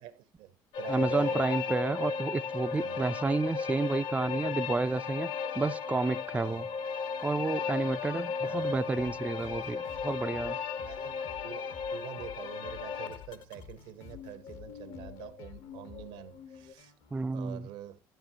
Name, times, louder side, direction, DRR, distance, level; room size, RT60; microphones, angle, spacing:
voice 1, 0.0-1.4 2.7-3.1 6.3-6.8 7.2-7.3 8.4-8.8 10.8-16.9 17.2-18.0, right 11 dB, 80° right, 1.0 m, -47 dB
sound 1, 0.7-13.6 14.1-16.7, left 5 dB, 60° left, 0.9 m, -35 dB
voice 2, 0.9-6.7 7.2-10.6 17.1-17.7, right 3 dB, 15° right, 0.3 m, -31 dB
sound 2, 8.9-17.3, left 7 dB, 80° left, 1.5 m, -52 dB
10.5 x 7.3 x 2.8 m
supercardioid pair, 85°, 10 cm